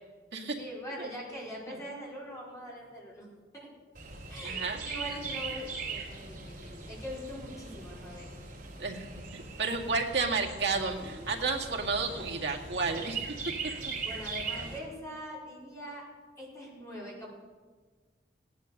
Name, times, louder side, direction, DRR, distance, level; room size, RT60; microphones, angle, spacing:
voice 1, 0.6-3.2 3.5-3.7 4.3-8.3 14.0-16.0 16.4-17.3, equal, 15° left, -5 dB, 4.9 m, -42 dB
Chirp tweet, 3.9-14.8, right 4 dB, 50° right, 4.0 m, -40 dB
voice 2, 4.4-4.8 8.8-9.1 9.3-13.3 13.9-14.0, right 4 dB, 65° right, 0 dB, 2.1 m, -31 dB
17.0 x 11.0 x 6.6 m, 1.4 s
head